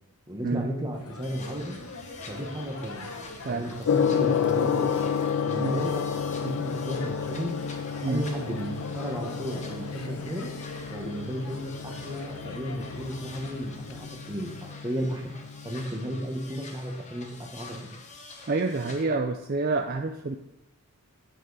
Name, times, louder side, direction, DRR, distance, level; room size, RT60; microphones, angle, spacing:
voice 1, 0.3-1.8 2.3-3.1 3.5-7.5 8.0-10.5 10.9-14.5 14.8-15.3 15.6-18.0, equal, 15° right, 1 dB, 1.2 m, -34 dB
sound 1, 0.9-14.1, left 2 dB, 80° left, 1.1 m, -43 dB
sound 2, 1.2-19.0, left 4 dB, 30° left, 1.0 m, -47 dB
Gong, 3.8-15.8, left 7 dB, 65° left, 0.3 m, -30 dB
voice 2, 5.6-5.9 6.4-6.6 8.0-8.2 18.5-20.4, right 3 dB, 40° right, 5 dB, 0.4 m, -28 dB
9.1 x 6.7 x 4.1 m, 0.92 s
head